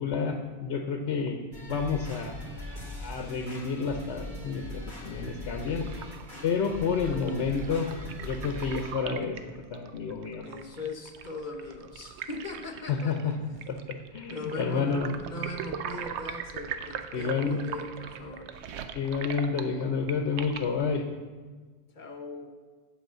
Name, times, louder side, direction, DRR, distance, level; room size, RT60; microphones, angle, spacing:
voice 1, 0.0-2.3 2.7-5.9 6.4-7.9 8.2-10.4 12.9-13.3 13.7-15.1 17.1-17.6 18.9-21.0, left 5 dB, 85° left, 4 dB, 1.0 m, -30 dB
sound 1, 1.5-8.9, left 1 dB, 45° right, 2.8 m, -41 dB
sound 2, 5.6-20.9, right 7 dB, 90° right, 0.9 m, -41 dB
voice 2, 6.9-7.7 10.4-13.3 14.3-18.5 21.9-22.5, left 2 dB, 50° left, 4 dB, 0.9 m, -40 dB
8.0 x 5.0 x 7.3 m, 1.4 s
omnidirectional pair, 1.1 m